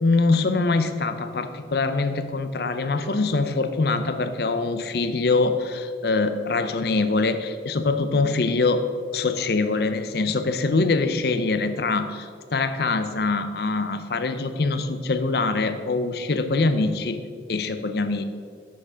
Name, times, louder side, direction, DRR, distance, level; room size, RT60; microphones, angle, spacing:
voice 1, 0.0-8.8 9.1-17.2 17.5-18.3, left 3 dB, 60° left, 10 dB, 0.6 m, -23 dB
7.3 x 6.7 x 5.6 m, 2.1 s
head